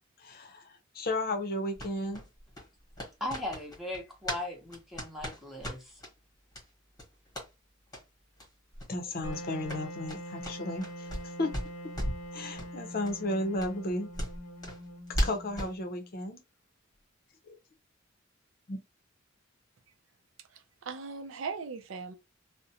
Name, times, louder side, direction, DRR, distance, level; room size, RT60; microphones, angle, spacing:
voice 1, 0.2-2.3 8.9-11.1 11.4-11.6 12.3-14.1 15.2-16.4 17.5-17.6 18.7-18.8, left 1 dB, 50° left, 0.6 m, -34 dB
sound 1, 1.7-4.4 4.7-6.1 6.5-6.6 6.9-7.5 7.9-8.0 8.4-8.5 8.7-8.9 9.2-11.3 11.5-12.3 12.6-12.7 13.0-13.1 13.6-15.7, equal, 20° left, 1.1 m, -36 dB
voice 2, 3.2-6.0, left 1 dB, ahead, 0.8 m, -38 dB
Wind instrument woodwind instrument, 9.2-16.2, equal, 85° left, 0.6 m, -44 dB
voice 3, 20.5-22.1, right 5 dB, 75° right, 0.4 m, -39 dB
2.4 x 2.1 x 2.8 m
head